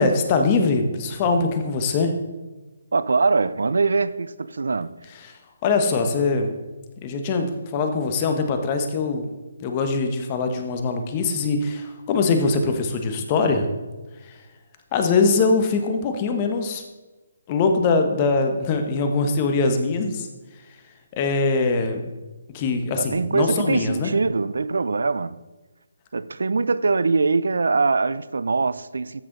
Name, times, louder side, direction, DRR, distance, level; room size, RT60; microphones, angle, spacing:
voice 1, 0.0-2.1 5.2-5.3 5.6-6.5 7.0-7.5 7.7-9.3 9.6-13.7 14.9-16.8 17.5-20.3 21.1-22.0 22.5-24.1, left 4 dB, 30° left, 1.2 m, -22 dB
voice 2, 2.9-4.9 23.0-25.4 26.1-29.2, right 4 dB, 80° right, 0.4 m, -22 dB
14.0 x 6.2 x 4.0 m
hypercardioid pair, 155°, 0 cm